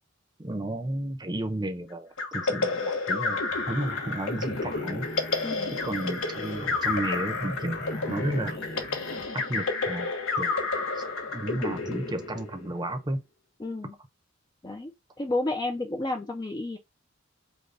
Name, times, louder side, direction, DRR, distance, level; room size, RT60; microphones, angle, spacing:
voice 1, 0.4-5.1 5.8-8.6 9.3-10.1 10.4-10.6 11.0-11.1 11.3-13.2, right 1 dB, 20° right, 0.7 m, -32 dB
sound 1, 2.2-12.8, left 3 dB, 85° left, 1.0 m, -30 dB
sound 2, 3.5-9.3, left 1 dB, 55° left, 1.3 m, -41 dB
voice 2, 5.4-5.7 13.6-13.9 14.6-16.8, left 2 dB, 20° left, 0.4 m, -31 dB
5.3 x 2.2 x 3.9 m
head